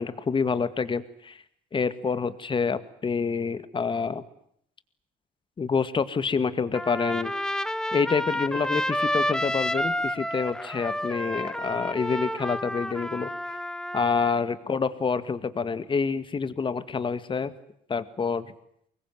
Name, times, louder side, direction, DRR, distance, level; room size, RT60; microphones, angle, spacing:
voice 1, 0.0-1.4 1.7-4.2 5.6-7.3 7.9-13.3 13.9-17.5 17.9-18.5, left 5 dB, 30° left, 13 dB, 2.0 m, -27 dB
Trumpet, 6.7-14.4, equal, 5° left, 1.1 m, -30 dB
24.5 x 21.0 x 9.5 m, 0.69 s
cardioid pair, 110°, 17 cm